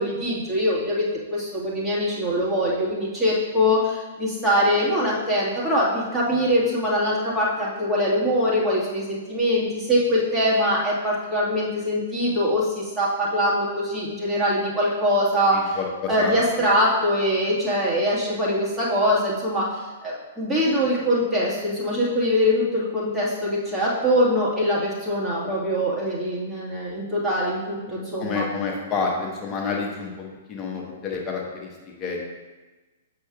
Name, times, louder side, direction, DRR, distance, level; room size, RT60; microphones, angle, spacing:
voice 1, 0.0-15.8 16.1-28.5, equal, 10° right, -7 dB, 1.8 m, -23 dB
voice 2, 15.5-16.6 28.2-32.2, left 5 dB, 25° left, -1 dB, 1.1 m, -29 dB
7.9 x 5.5 x 2.4 m, 1.2 s
figure-of-eight pair, 110°, 0 cm